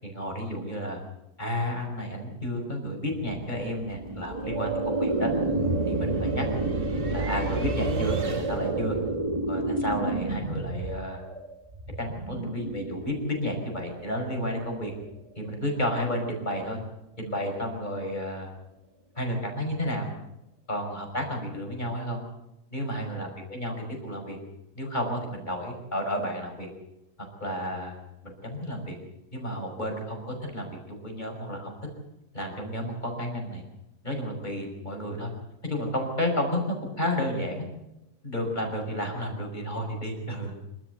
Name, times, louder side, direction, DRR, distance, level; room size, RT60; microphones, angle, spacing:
voice 1, 0.0-1.0 1.4-5.3 5.9-6.5 7.1-9.0 9.5-11.2 12.0-14.9 15.4-16.8 17.2-18.5 19.2-20.1 20.7-22.2 22.7-23.7 24.0-24.4 24.8-26.7 27.4-29.0 29.3-31.7 32.3-33.6 34.0-35.3 35.6-37.7 38.2-40.6, equal, 25° left, 2 dB, 5.8 m, -31 dB
sound 1, 3.3-8.9, right 3 dB, 35° right, 1.5 m, -36 dB
sound 2, 3.9-15.1, right 2 dB, 20° right, 1.8 m, -30 dB
26.0 x 14.0 x 8.1 m, 0.93 s
omnidirectional pair, 1.7 m